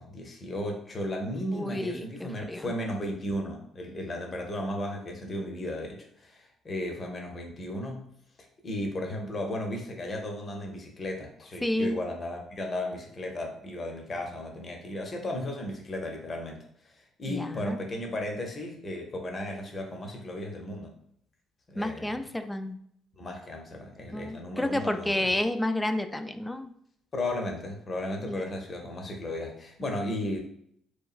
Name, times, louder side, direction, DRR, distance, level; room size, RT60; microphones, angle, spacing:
voice 1, 0.0-8.1 8.6-16.6 17.2-20.9 21.7-22.2 23.2-25.4 27.1-30.4, left 1 dB, 40° left, 2 dB, 0.7 m, -35 dB
voice 2, 1.5-2.7 11.6-12.0 17.3-17.8 21.8-22.8 24.1-26.7 28.3-28.4, left 1 dB, 10° left, 8 dB, 0.3 m, -30 dB
2.9 x 2.3 x 2.4 m, 0.69 s
hypercardioid pair, 50°, 0 cm